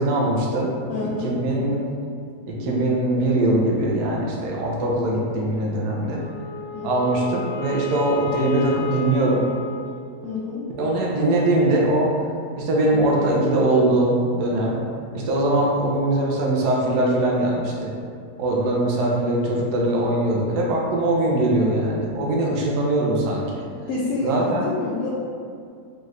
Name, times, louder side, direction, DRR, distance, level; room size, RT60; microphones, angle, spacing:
voice 1, 0.0-0.7 1.2-1.8 2.5-6.2 6.8-9.4 10.7-12.1 12.6-14.8 15.1-17.9 18.4-23.6 24.2-24.6, right 1 dB, 80° right, -3 dB, 1.2 m, -21 dB
voice 2, 0.9-1.4 6.7-7.0 10.2-10.7 23.9-25.1, left 3 dB, 70° left, -6 dB, 1.0 m, -28 dB
Wind instrument woodwind instrument, 6.1-10.6, left 7 dB, 90° left, 1.3 m, -33 dB
4.4 x 2.4 x 3.1 m, 2.3 s
omnidirectional pair, 1.7 m